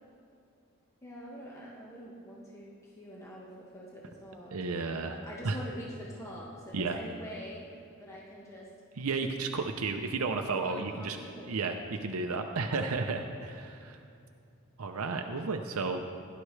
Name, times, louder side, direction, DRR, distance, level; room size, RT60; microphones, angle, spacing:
voice 1, 1.0-7.7 8.0-8.7 10.6-11.8, equal, 15° left, -5 dB, 1.3 m, -45 dB
voice 2, 4.5-5.2 5.4-5.6 6.7-7.0 9.0-11.2 11.5-11.8 12.0-14.0 14.8-16.0, right 4 dB, 85° right, 4 dB, 0.6 m, -32 dB
16.5 x 11.0 x 3.3 m, 2.5 s
head